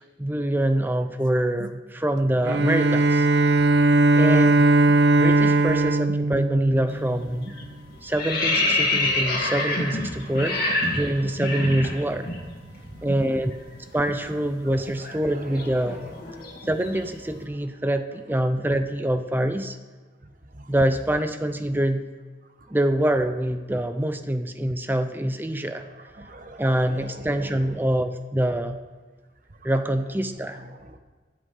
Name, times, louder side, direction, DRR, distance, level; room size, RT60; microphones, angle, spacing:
voice 1, 0.2-3.3 4.1-4.7 5.2-7.5 8.0-10.6 10.9-12.3 13.0-13.5 13.9-16.0 16.6-19.8 20.7-22.1 22.7-25.8 26.6-28.8 29.6-30.6, right 1 dB, 10° right, 8 dB, 0.5 m, -25 dB
Bowed string instrument, 2.4-7.3, right 2 dB, 70° right, 0.6 m, -19 dB
sound 1, 6.9-7.2 7.5-12.4 12.7-12.9 13.2-17.2, left 2 dB, 55° left, 2.4 m, -27 dB
voice 2, 10.2-10.8 12.6-13.2 14.1-14.2 14.6-16.0 16.6-16.7 20.5-20.7 26.1-27.7 29.6-29.7 30.3-31.0, right 1 dB, 50° right, 6 dB, 1.2 m, -42 dB
23.5 x 8.3 x 3.8 m, 1.4 s
head